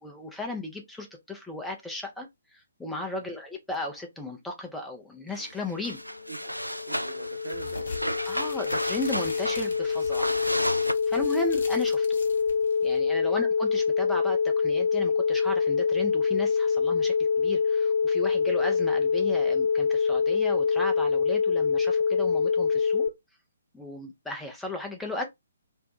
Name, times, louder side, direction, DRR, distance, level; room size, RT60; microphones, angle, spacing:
voice 1, 0.0-2.3 2.5-6.0 8.3-10.3 10.7-12.2 12.8-23.1 23.7-25.2, left 2 dB, 5° left, 0.5 m, -36 dB
sound 1, 5.3-5.5 5.8-10.9, equal, 90° right, 0.3 m, -33 dB
sound 2, 6.1-23.1, left 5 dB, 65° left, 0.5 m, -25 dB
voice 2, 6.8-7.9 13.2-13.3, right 3 dB, 65° right, 0.8 m, -42 dB
sound 3, 7.5-13.0, left 3 dB, 50° left, 0.9 m, -44 dB
2.6 x 2.2 x 3.6 m
figure-of-eight pair, 130°, 0 cm